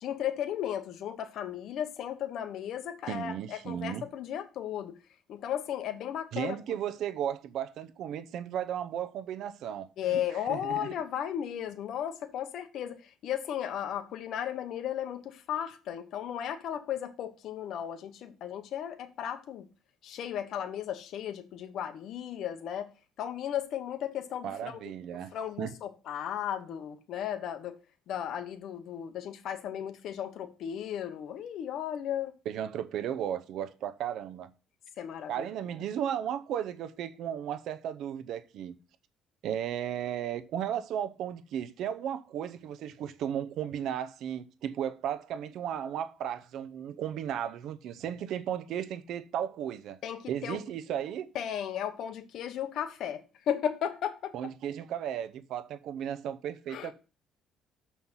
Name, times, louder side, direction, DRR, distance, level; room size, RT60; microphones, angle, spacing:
voice 1, 0.0-5.0 5.3-6.8 10.0-19.7 20.0-22.9 23.2-24.8 25.1-27.8 28.1-32.3 35.0-35.5 50.0-50.6 51.3-54.3 56.7-56.9, left 10 dB, 60° left, 1.0 m, -35 dB
voice 2, 3.1-4.0 6.3-10.2 10.5-10.9 24.4-25.3 25.6-25.7 32.5-34.5 35.3-38.7 39.4-50.0 50.3-51.3 54.3-56.9, right 9 dB, 65° right, 0.7 m, -35 dB
6.4 x 5.6 x 5.7 m
cardioid pair, 125°, 0 cm